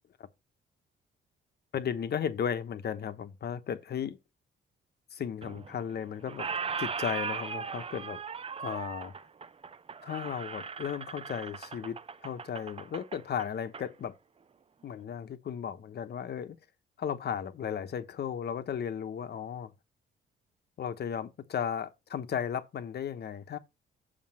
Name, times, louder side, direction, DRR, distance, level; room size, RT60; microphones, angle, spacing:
voice 1, 1.7-4.2 5.1-6.5 6.8-8.2 8.6-9.1 10.0-14.1 14.8-16.6 17.0-19.7 20.8-23.6, left 8 dB, 55° left, 1.1 m, -35 dB
Squeak, 5.4-6.0 6.2-13.9, right 6 dB, 30° right, 0.6 m, -38 dB
7.6 x 6.8 x 4.3 m
cardioid pair, 90°, 20 cm